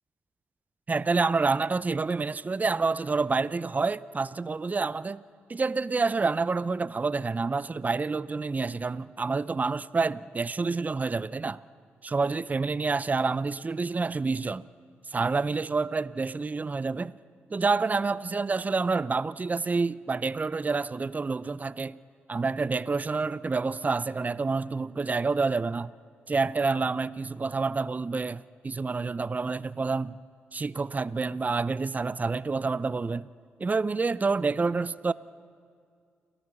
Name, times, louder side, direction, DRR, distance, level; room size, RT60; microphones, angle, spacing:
voice 1, 0.9-5.2 5.5-11.6 12.0-14.7 15.1-17.1 17.5-22.0 22.3-25.9 26.3-30.2 30.5-33.3 33.6-35.1, right 4 dB, 30° right, 0.5 m, -28 dB
29.0 x 14.0 x 6.9 m
hypercardioid pair, 40°, 5 cm